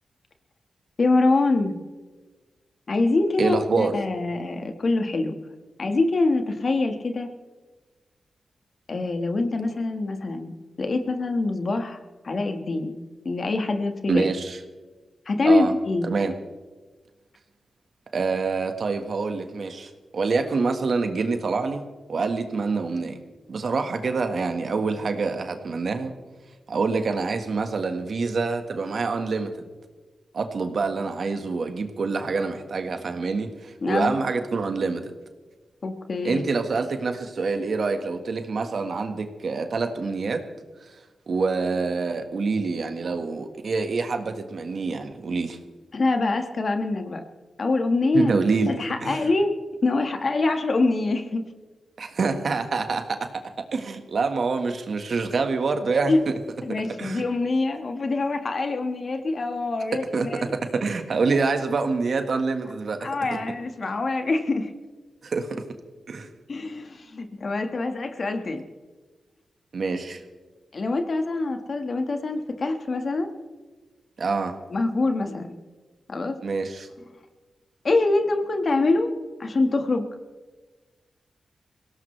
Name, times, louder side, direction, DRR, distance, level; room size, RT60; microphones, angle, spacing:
voice 1, 1.0-1.8 2.9-5.4 5.8-7.3 8.9-12.0 12.2-13.0 13.2-14.2 15.2-16.1 33.8-34.1 35.8-36.4 45.9-47.2 47.6-48.3 48.7-49.5 49.8-51.4 56.1-56.2 56.6-60.5 63.0-64.7 66.5-68.6 70.7-73.3 74.7-75.6 76.1-76.4 77.8-79.1 79.4-80.1, left 3 dB, 50° left, 6 dB, 1.6 m, -24 dB
voice 2, 3.4-4.0 14.1-14.6 15.4-15.7 16.1-16.3 18.1-23.2 23.5-26.1 26.7-29.7 30.3-35.1 36.2-40.4 41.3-45.6 48.1-49.3 52.0-53.4 53.7-56.1 57.0-57.2 60.1-63.4 65.2-65.6 66.1-66.3 69.7-70.2 74.2-74.6 76.4-76.9, right 4 dB, 60° right, 7 dB, 1.6 m, -26 dB
22.5 x 17.0 x 3.3 m, 1.3 s
cardioid pair, 80°, 0 cm